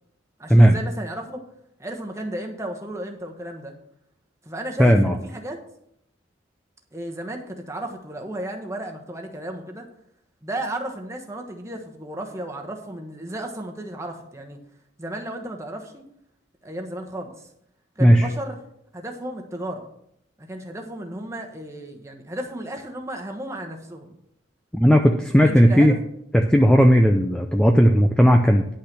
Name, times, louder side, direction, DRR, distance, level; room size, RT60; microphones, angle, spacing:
voice 1, 0.4-1.4 1.8-3.7 4.4-5.6 6.9-9.9 10.4-14.6 15.0-16.0 16.6-17.5 18.0-18.5 18.9-19.9 20.4-24.2 25.4-26.0, right 1 dB, 15° right, 3 dB, 1.2 m, -34 dB
voice 2, 4.8-5.2 18.0-18.3 24.7-25.9 26.3-28.7, equal, 5° left, 3 dB, 0.5 m, -15 dB
10.5 x 5.6 x 6.1 m, 0.74 s
head